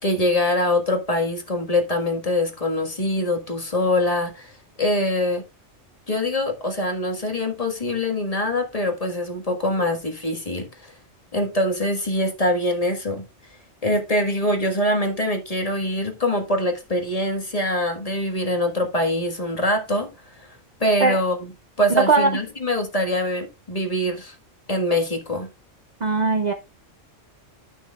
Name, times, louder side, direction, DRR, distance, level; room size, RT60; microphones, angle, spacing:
voice 1, 0.0-5.4 6.1-10.9 11.3-13.2 13.8-20.1 20.4-21.5 21.8-24.3 24.7-25.5, left 1 dB, 30° left, 1.6 m, -24 dB
voice 2, 22.0-22.3 26.0-26.5, right 4 dB, 45° right, 0.7 m, -19 dB
11.5 x 6.3 x 2.3 m
omnidirectional pair, 1.3 m